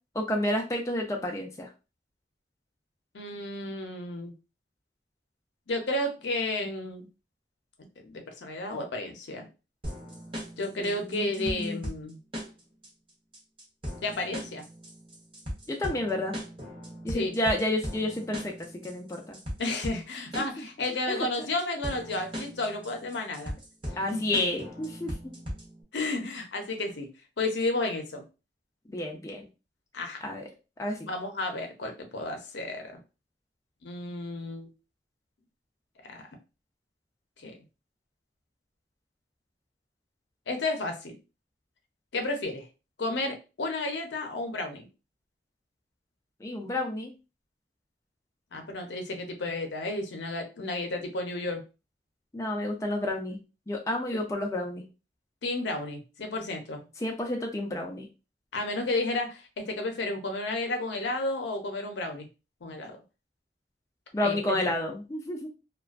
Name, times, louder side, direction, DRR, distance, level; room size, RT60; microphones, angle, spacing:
voice 1, 0.1-1.7 10.8-11.9 15.7-16.4 17.0-19.4 20.4-20.6 21.1-21.3 24.0-25.3 28.9-29.4 30.2-30.4 30.8-31.1 46.4-47.1 52.3-53.4 53.7-54.8 57.0-58.1 64.1-65.5, left 1 dB, 15° left, 1 dB, 0.4 m, -30 dB
voice 2, 3.1-4.3 5.7-7.1 8.0-9.5 10.6-12.2 14.0-14.6 17.1-17.4 19.6-23.6 24.1-24.2 25.9-27.1 27.4-28.2 29.9-30.2 31.1-33.0 33.8-34.7 36.0-36.3 37.4-37.6 40.5-41.2 42.1-42.7 43.0-44.9 48.5-51.6 55.4-56.8 58.5-62.3 62.6-63.0 64.2-64.6, left 2 dB, 80° left, 4 dB, 0.6 m, -32 dB
sound 1, 9.8-25.8, equal, 30° right, 0.8 m, -39 dB
2.4 x 2.2 x 2.3 m, 0.30 s
head